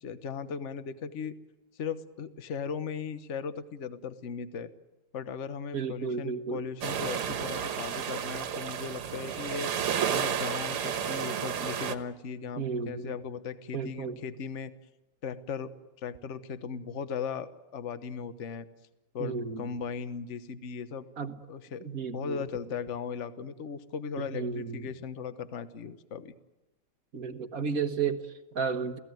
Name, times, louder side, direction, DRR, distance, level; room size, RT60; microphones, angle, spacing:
voice 1, 0.0-1.4 1.7-4.7 5.1-9.7 10.1-14.7 15.2-18.7 19.1-21.1 21.5-26.3, left 6 dB, 40° left, 12 dB, 1.2 m, -37 dB
voice 2, 5.7-6.6 12.6-13.1 13.7-14.2 19.2-19.7 21.2-21.3 21.8-22.4 24.2-24.9 27.1-29.0, right 6 dB, 45° right, 8 dB, 1.6 m, -33 dB
sound 1, 6.8-11.9, right 8 dB, 85° right, 2.2 m, -32 dB
28.5 x 18.0 x 9.3 m, 1.0 s
omnidirectional pair, 2.4 m